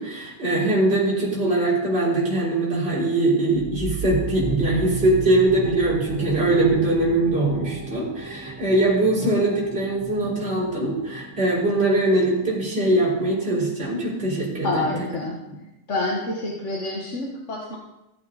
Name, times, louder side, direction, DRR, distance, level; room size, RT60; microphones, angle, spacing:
voice 1, 0.0-14.9, right 2 dB, 35° right, -6 dB, 4.0 m, -22 dB
sound 1, 3.5-12.9, right 2 dB, 15° right, 0.6 m, -34 dB
voice 2, 14.6-15.4 15.9-17.8, left 2 dB, 50° left, -2 dB, 1.7 m, -27 dB
16.0 x 8.6 x 4.0 m, 0.95 s
omnidirectional pair, 1.7 m